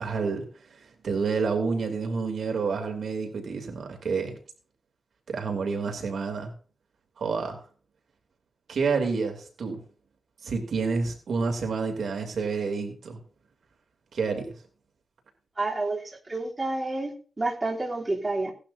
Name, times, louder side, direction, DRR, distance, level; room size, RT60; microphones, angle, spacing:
voice 1, 0.0-4.4 5.3-6.5 7.2-7.6 8.7-9.8 10.4-13.2 14.1-14.5, right 4 dB, 70° right, 4 dB, 2.8 m, -29 dB
voice 2, 15.6-18.5, right 2 dB, 25° right, -2 dB, 3.2 m, -29 dB
17.5 x 11.5 x 2.7 m, 0.39 s
wide cardioid pair, 100°, 0 cm